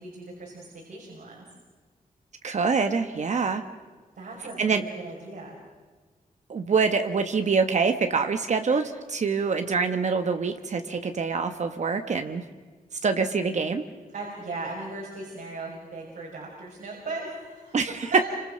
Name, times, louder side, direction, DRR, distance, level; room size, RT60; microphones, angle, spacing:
voice 1, 0.0-1.5 4.1-5.6 14.1-17.8 18.1-18.2, right 3 dB, 80° right, -3 dB, 6.2 m, -38 dB
voice 2, 2.4-3.6 4.6-4.8 6.5-12.4 13.0-13.9 17.7-18.2, right 5 dB, 55° right, 7 dB, 1.3 m, -25 dB
29.5 x 26.5 x 6.5 m, 1.4 s
wide cardioid pair, 165°, 15 cm